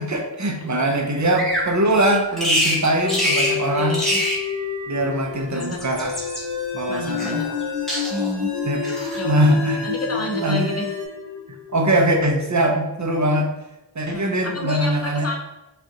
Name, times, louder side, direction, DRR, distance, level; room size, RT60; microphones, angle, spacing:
voice 1, 0.0-4.0 4.9-6.1 6.7-7.4 8.6-8.8 9.2-9.9 10.4-10.7 11.7-13.5 14.0-15.3, right 1 dB, 40° right, 3 dB, 0.7 m, -21 dB
Bird vocalization bird call bird song, 1.3-1.7 2.4-2.8 3.1-3.6 3.9-4.4 5.4-6.4 7.2-7.6 7.9-8.4 8.8-9.2, equal, ahead, 1.4 m, -24 dB
sound 1, 3.0-12.2, left 7 dB, 80° left, 0.9 m, -29 dB
voice 2, 3.7-4.2 5.5-5.8 6.9-7.5 8.1-8.5 9.1-10.9 14.1-15.4, equal, 35° left, 0 dB, 0.8 m, -31 dB
sound 2, 5.9-11.1, left 2 dB, 60° left, 1.3 m, -34 dB
5.0 x 2.5 x 2.9 m, 1.0 s
wide cardioid pair, 65°, 43 cm